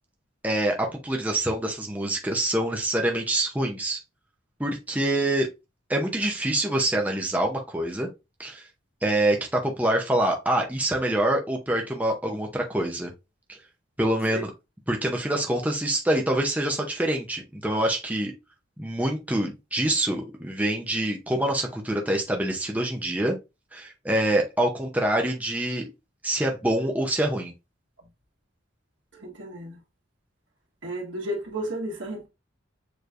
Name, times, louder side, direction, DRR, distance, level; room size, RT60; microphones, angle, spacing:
voice 1, 0.4-4.0 4.6-5.5 5.9-8.1 8.4-8.6 9.0-13.1 13.5-13.6 14.0-14.5 14.9-18.3 18.8-23.4 23.7-25.9 26.2-27.5, right 1 dB, 10° right, 0.7 m, -25 dB
voice 2, 29.1-29.8 30.8-32.3, right 1 dB, 70° right, 1.7 m, -33 dB
6.7 x 3.1 x 2.5 m
head